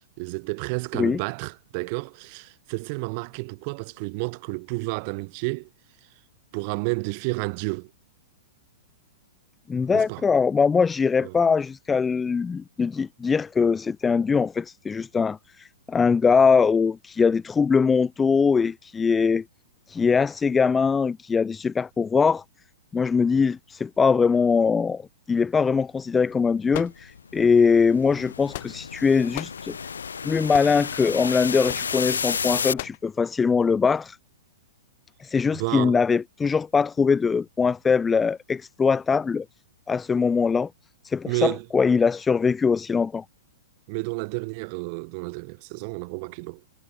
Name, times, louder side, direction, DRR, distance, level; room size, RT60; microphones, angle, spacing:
voice 1, 0.2-5.7 6.5-7.9 9.9-10.2 11.2-11.3 35.5-36.0 41.3-41.7 43.9-46.6, right 32 dB, 45° right, 3.6 m, -31 dB
voice 2, 9.7-19.4 19.9-22.4 22.9-25.0 25.3-29.8 30.2-34.2 35.2-39.4 39.9-40.7 41.0-43.2, left 5 dB, 15° left, 3.4 m, -22 dB
sound 1, 26.7-32.7, left 6 dB, 80° left, 2.4 m, -31 dB
sound 2, 26.7-27.5 28.2-29.0 29.3-29.6 30.5-30.9 31.7-31.9 32.8-33.1, left 18 dB, 55° left, 2.3 m, -37 dB
hypercardioid pair, 110°, 0 cm